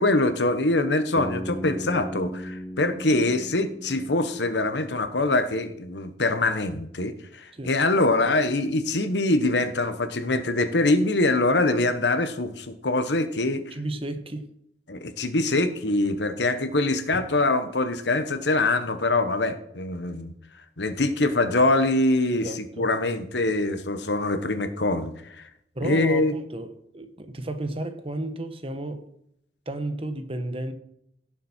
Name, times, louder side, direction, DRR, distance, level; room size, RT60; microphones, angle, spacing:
voice 1, 0.0-13.6 14.9-20.3 20.8-25.4 25.8-26.3, left 2 dB, 75° left, 1.2 m, -24 dB
Bass guitar, 1.2-5.1, equal, 15° left, 0.4 m, -37 dB
voice 2, 13.7-14.5 22.3-22.9 25.7-29.1 29.7-30.7, right 1 dB, 30° right, 1.2 m, -33 dB
17.0 x 7.3 x 4.5 m
head